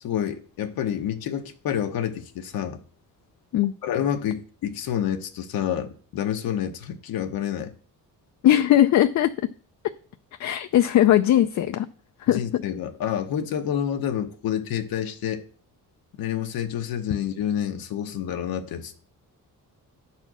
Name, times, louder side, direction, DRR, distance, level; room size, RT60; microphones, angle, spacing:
voice 1, 0.0-2.8 3.8-7.7 12.3-15.4 16.2-18.9, left 9 dB, 80° left, 1.0 m, -28 dB
voice 2, 8.4-9.3 10.4-11.9 12.2-12.6, left 12 dB, 55° left, 0.4 m, -19 dB
8.9 x 4.3 x 6.2 m
cardioid pair, 130°, 35 cm